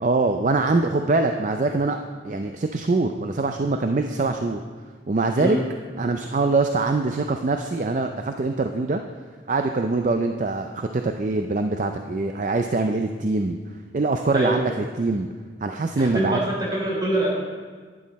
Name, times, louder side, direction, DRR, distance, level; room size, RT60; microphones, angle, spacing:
voice 1, 0.0-2.0 2.2-4.6 5.1-5.6 6.0-9.0 9.5-13.6 13.9-15.3 15.6-16.4, right 3 dB, 45° right, 6 dB, 0.4 m, -23 dB
voice 2, 14.3-14.7 16.0-17.3, right 1 dB, 25° right, -5 dB, 3.5 m, -24 dB
11.5 x 10.0 x 4.1 m, 1.5 s
head